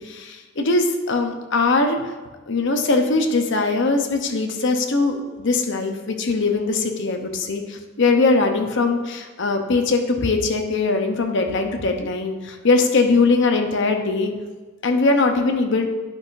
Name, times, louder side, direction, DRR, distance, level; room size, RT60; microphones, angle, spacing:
voice 1, 0.0-2.1 2.5-14.4 14.8-15.9, left 3 dB, 65° left, 5 dB, 0.8 m, -21 dB
10.5 x 5.7 x 2.6 m, 1.3 s
head